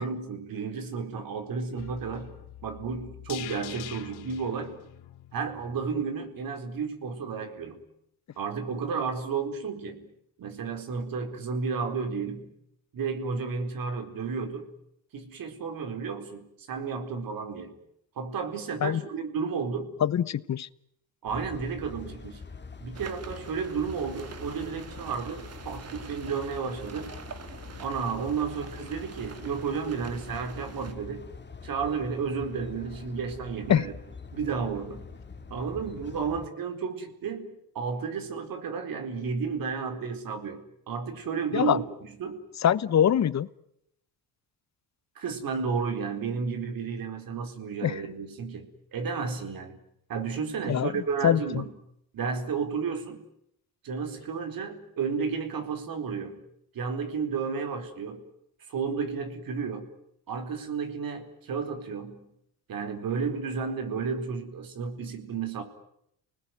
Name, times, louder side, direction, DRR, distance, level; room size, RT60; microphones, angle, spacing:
voice 1, 0.0-2.3 2.6-4.8 5.3-7.8 8.4-10.1 10.4-12.5 12.9-14.7 15.1-17.8 18.2-20.0 21.2-22.4 22.8-27.1 27.8-31.3 31.6-33.9 34.3-35.1 35.5-42.5 45.2-49.8 50.1-51.8 52.1-53.2 53.8-56.4 56.7-58.2 58.7-59.9 60.3-62.3 62.7-65.6, right 5 dB, 60° right, 6 dB, 4.4 m, -32 dB
sound 1, 1.8-6.0 6.3-6.4, left 13 dB, 80° left, 1.8 m, -44 dB
voice 2, 20.0-20.7 33.7-33.8 41.5-41.8 42.6-43.5 47.8-47.9 50.7-50.9 51.2-51.6, left 9 dB, 45° left, 18 dB, 1.1 m, -23 dB
sound 2, 21.3-36.5, left 5 dB, 25° left, 2.6 m, -44 dB
sound 3, 22.9-30.9, right 5 dB, 40° right, 2.4 m, -46 dB
29.5 x 20.0 x 9.5 m, 0.77 s
cardioid pair, 85°, 38 cm